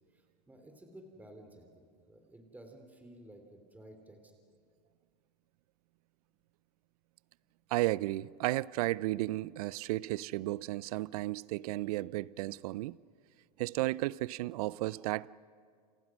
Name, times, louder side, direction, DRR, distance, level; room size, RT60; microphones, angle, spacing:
voice 1, 0.1-4.3, right 1 dB, 5° right, 3.6 m, -54 dB
voice 2, 7.7-13.0 13.6-15.3, right 18 dB, 60° right, 0.6 m, -33 dB
28.5 x 28.0 x 6.3 m
hypercardioid pair, 95°, 21 cm